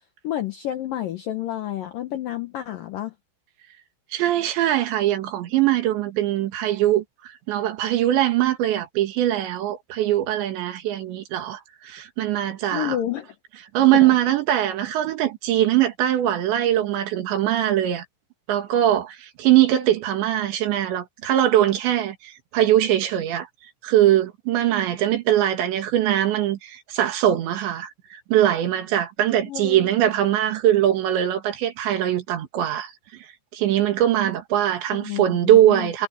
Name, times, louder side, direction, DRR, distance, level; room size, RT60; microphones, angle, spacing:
voice 1, 0.2-3.1 12.7-13.3 29.5-29.9 34.9-35.9, left 12 dB, 75° left, 2.0 m, -30 dB
voice 2, 4.1-13.0 13.7-18.0 18.5-23.5 23.8-32.9 33.5-36.1, right 12 dB, 70° right, 3.9 m, -21 dB
omnidirectional pair, 5.6 m